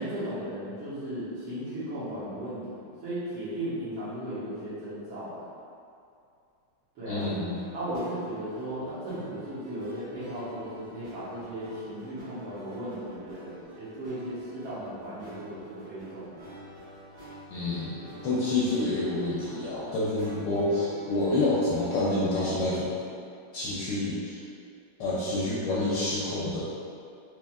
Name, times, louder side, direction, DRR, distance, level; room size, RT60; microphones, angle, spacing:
voice 1, 0.0-5.5 7.0-7.3 7.7-16.4, right 1 dB, 75° right, -12 dB, 2.0 m, -36 dB
voice 2, 7.0-7.5 17.5-22.9 23.5-24.4 25.0-26.7, left 2 dB, 70° left, -7 dB, 1.1 m, -28 dB
sound 1, 7.2-22.4, right 1 dB, 55° right, 1.8 m, -47 dB
4.3 x 3.0 x 2.3 m, 2.5 s
omnidirectional pair, 2.3 m